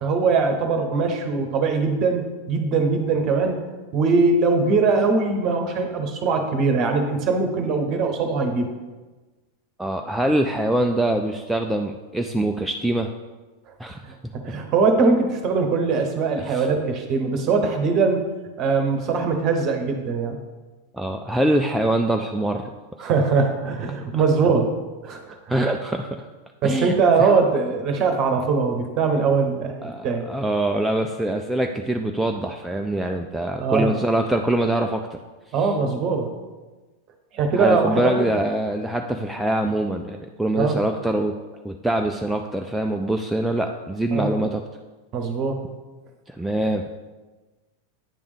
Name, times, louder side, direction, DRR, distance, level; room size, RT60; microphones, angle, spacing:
voice 1, 0.0-3.6 3.9-8.7 14.4-18.3 18.6-20.4 23.0-24.7 25.0-25.4 26.6-30.3 33.6-33.9 35.5-36.3 37.3-38.3 40.5-40.8 44.1-44.3 45.1-45.6, right 4 dB, 35° right, 5 dB, 1.0 m, -21 dB
voice 2, 9.8-13.1 13.8-14.0 16.4-16.7 20.9-22.6 25.5-26.3 26.6-26.9 27.2-27.3 29.8-35.2 35.5-35.7 37.6-41.3 41.6-44.6 46.3-46.8, right 1 dB, 5° right, 3 dB, 0.3 m, -24 dB
9.1 x 3.5 x 5.0 m, 1.2 s
figure-of-eight pair, 90°, 0 cm